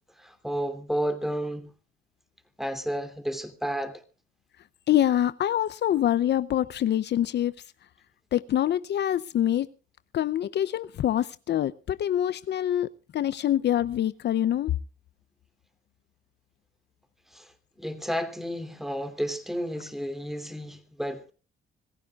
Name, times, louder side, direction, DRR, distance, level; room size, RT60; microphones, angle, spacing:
voice 1, 0.2-1.7 2.6-4.0 17.3-17.5 17.8-21.3, equal, ahead, 3.0 m, -32 dB
voice 2, 4.9-7.5 8.3-9.7 10.1-14.7, left 11 dB, 60° left, 0.6 m, -25 dB
26.0 x 15.0 x 2.4 m
cardioid pair, 90°, 20 cm